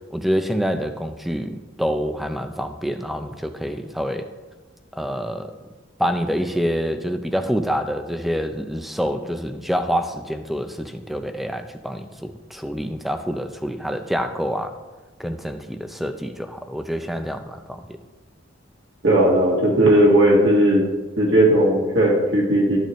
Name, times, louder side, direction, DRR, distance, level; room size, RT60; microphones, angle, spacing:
voice 1, 0.1-4.3 4.9-5.5 6.0-14.7 15.2-18.0, equal, ahead, 8 dB, 0.4 m, -26 dB
voice 2, 19.0-20.8 21.2-22.8, right 1 dB, 60° right, -4 dB, 1.9 m, -16 dB
12.5 x 6.6 x 3.1 m, 1.2 s
head